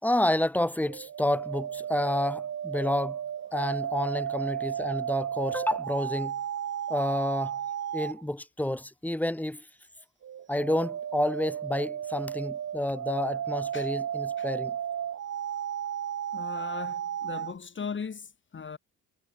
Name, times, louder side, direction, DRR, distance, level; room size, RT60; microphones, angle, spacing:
voice 1, 0.0-3.2 3.5-6.4 6.9-7.6 7.9-9.7 10.5-14.8, left 1 dB, 5° left, 4.7 m, -29 dB
sound 1, 0.8-8.2 10.2-17.5, right 9 dB, 55° right, 2.1 m, -34 dB
voice 2, 16.3-18.8, left 6 dB, 40° left, 4.8 m, -38 dB
cardioid pair, 90°, 30 cm